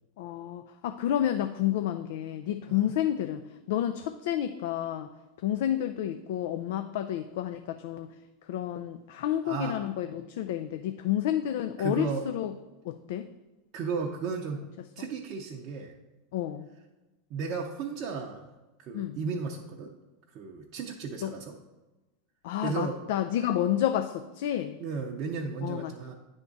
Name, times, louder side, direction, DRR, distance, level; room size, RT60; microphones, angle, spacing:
voice 1, 0.2-5.1 5.4-8.2 8.4-12.5 12.8-13.3 15.0-15.1 16.3-16.7 18.9-19.2 21.2-21.3 22.4-24.8 25.6-25.9, left 11 dB, 70° left, 8 dB, 0.3 m, -30 dB
voice 2, 9.4-9.8 11.8-12.2 13.7-14.6 15.0-15.9 17.3-18.5 18.8-19.9 20.3-21.6 22.6-23.0 24.8-26.1, right 5 dB, 50° right, -1 dB, 0.6 m, -34 dB
9.2 x 3.6 x 3.9 m, 1.1 s
hypercardioid pair, 105°, 0 cm